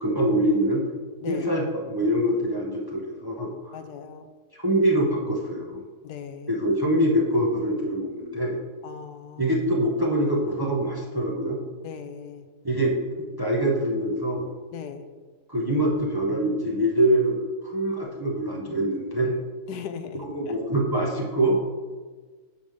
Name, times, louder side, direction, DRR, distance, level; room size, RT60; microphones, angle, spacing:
voice 1, 0.0-0.8 1.3-3.7 4.5-5.8 6.5-8.6 9.4-11.6 12.6-12.9 13.4-14.5 15.5-17.4 17.6-19.3 20.2-21.6, right 1 dB, 20° right, -1 dB, 0.8 m, -24 dB
voice 2, 3.7-4.3 6.0-6.6 8.8-9.5 11.8-12.5 14.7-15.1 19.7-20.6, left 7 dB, 80° left, 8 dB, 1.2 m, -38 dB
9.0 x 3.6 x 6.5 m, 1.4 s
omnidirectional pair, 1.7 m